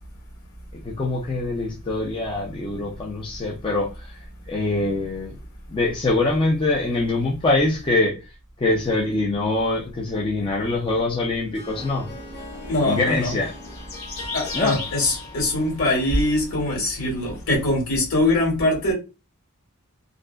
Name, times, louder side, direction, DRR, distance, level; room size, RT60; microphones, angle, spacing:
voice 1, 0.8-4.1 4.5-5.4 5.7-8.2 8.6-12.1 12.8-13.5 14.5-14.8, left 2 dB, 25° left, 0.4 m, -24 dB
Harp, 11.2-17.0, left 2 dB, 45° left, 0.9 m, -42 dB
sound 1, 11.7-17.8, left 4 dB, 90° left, 1.1 m, -39 dB
voice 2, 12.7-13.4 14.3-18.9, left 1 dB, 70° left, 1.5 m, -22 dB
2.5 x 2.2 x 2.2 m
head